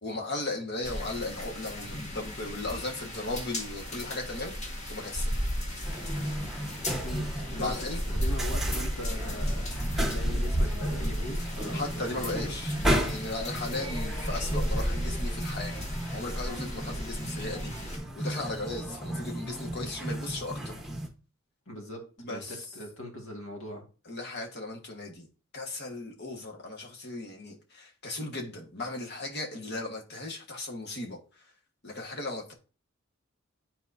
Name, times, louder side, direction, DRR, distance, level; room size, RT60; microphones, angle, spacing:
voice 1, 0.0-5.3 7.6-8.0 11.7-15.8 16.1-20.7 22.2-22.6 24.0-25.3 25.5-31.2 31.8-32.5, left 2 dB, 55° left, 1.6 m, -36 dB
sound 1, 0.8-18.0, equal, 35° left, 1.6 m, -33 dB
sound 2, 5.8-21.1, right 1 dB, ahead, 1.2 m, -35 dB
voice 2, 7.0-7.7 8.1-9.7 10.0-12.6 21.7-23.8, left 1 dB, 80° left, 2.0 m, -41 dB
10.5 x 4.2 x 2.7 m
head